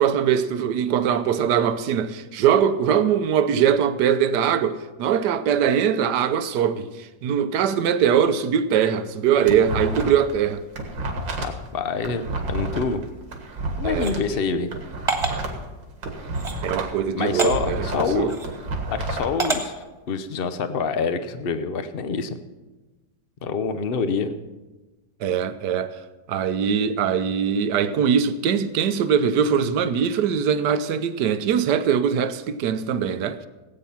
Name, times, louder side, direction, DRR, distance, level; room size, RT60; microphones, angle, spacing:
voice 1, 0.0-10.6 13.8-14.1 16.6-17.9 18.1-18.3 25.2-26.0 26.3-33.5, right 8 dB, 70° right, 1.2 m, -22 dB
sound 1, 9.1-10.3 10.6-14.2 14.6-17.0 17.2-19.3, right 2 dB, 90° right, 2.5 m, -30 dB
voice 2, 11.4-13.0 13.8-14.7 17.1-18.4 18.9-22.4 23.4-24.3, left 5 dB, 65° left, 0.5 m, -26 dB
sound 2, 14.0-14.1 15.1-15.4 16.3-16.6 17.4-17.5 18.3-18.5 19.4-19.6, right 3 dB, 20° right, 1.5 m, -25 dB
17.0 x 8.8 x 5.8 m
omnidirectional pair, 2.0 m